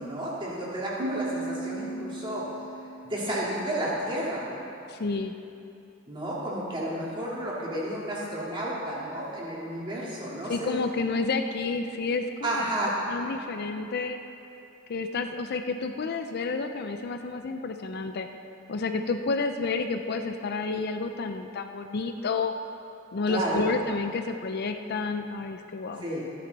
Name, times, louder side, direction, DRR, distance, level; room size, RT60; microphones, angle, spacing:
voice 1, 0.0-2.5 3.0-4.4 6.1-10.8 12.4-13.0 23.3-23.7 26.0-26.3, right 1 dB, 25° right, -6 dB, 2.2 m, -31 dB
Piano, 1.0-4.4, right 2 dB, 85° right, 2.3 m, -37 dB
voice 2, 4.9-5.3 10.5-12.6 13.1-14.2 14.9-18.3 18.7-22.5 23.1-26.0, left 4 dB, 50° left, 7 dB, 0.5 m, -30 dB
13.5 x 10.0 x 4.0 m, 2.7 s
head